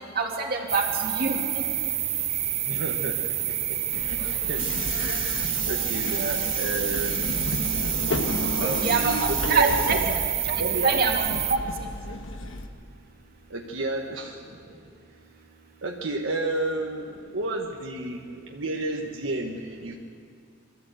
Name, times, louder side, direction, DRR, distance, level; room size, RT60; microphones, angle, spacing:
voice 1, 0.2-1.6 8.6-9.1 9.5-10.0 10.5-11.6, right 4 dB, 50° right, 1 dB, 2.5 m, -25 dB
sound 1, 0.7-11.6, right 12 dB, 35° right, 0.6 m, -28 dB
voice 2, 2.6-3.5 3.9-4.2 4.5-7.3 8.6-10.2 10.6-11.1 13.5-14.4 15.8-17.1 17.3-20.0, right 2 dB, 75° right, 0 dB, 1.4 m, -31 dB
Subway metro underground, 3.9-12.7, left 2 dB, 75° left, 1.4 m, -33 dB
23.0 x 14.0 x 8.0 m, 2.3 s
head